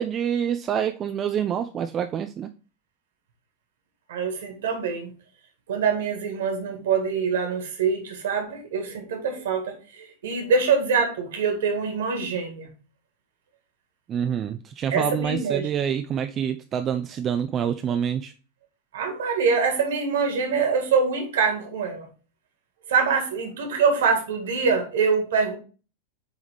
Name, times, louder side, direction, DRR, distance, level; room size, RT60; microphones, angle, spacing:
voice 1, 0.0-2.5 14.1-18.3, right 8 dB, 30° right, 0.4 m, -26 dB
voice 2, 4.1-5.1 5.7-12.7 14.9-15.7 18.9-22.1 22.9-25.6, right 5 dB, 60° right, 1.8 m, -24 dB
8.1 x 3.5 x 3.3 m
figure-of-eight pair, 90°, 0 cm